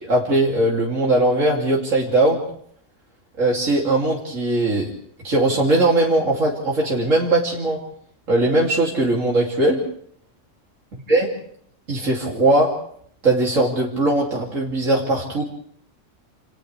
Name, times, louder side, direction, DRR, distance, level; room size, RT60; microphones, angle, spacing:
voice 1, 0.1-2.4 3.4-4.9 5.2-7.8 8.3-9.8 11.1-11.3 11.9-12.7 13.2-15.4, right 2 dB, 85° right, -3 dB, 3.3 m, -19 dB
28.5 x 28.5 x 3.4 m, 0.63 s
omnidirectional pair, 1.3 m